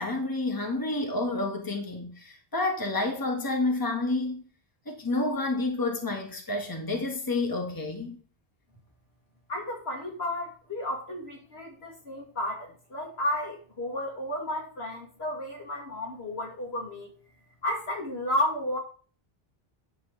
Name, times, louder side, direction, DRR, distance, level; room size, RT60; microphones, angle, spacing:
voice 1, 0.0-4.4 4.9-8.2, left 2 dB, 20° left, 1.5 m, -29 dB
voice 2, 9.5-17.1 17.6-18.8, left 1 dB, 80° left, 2.8 m, -32 dB
10.5 x 3.6 x 6.5 m
omnidirectional pair, 1.0 m